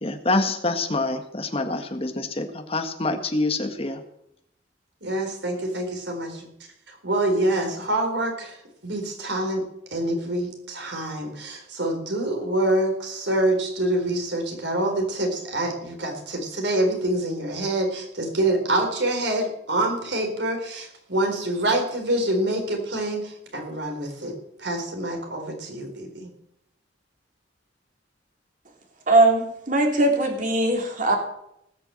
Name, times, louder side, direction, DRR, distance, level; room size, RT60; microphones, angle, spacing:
voice 1, 0.0-4.0, left 2 dB, 35° left, 6 dB, 1.6 m, -26 dB
voice 2, 5.0-6.5 7.0-8.6 8.8-9.6 9.9-24.3 24.6-26.3, right 1 dB, 85° right, 3 dB, 4.3 m, -26 dB
voice 3, 29.1-31.2, right 2 dB, 45° right, 2 dB, 3.2 m, -20 dB
19.0 x 6.9 x 7.7 m, 0.78 s
head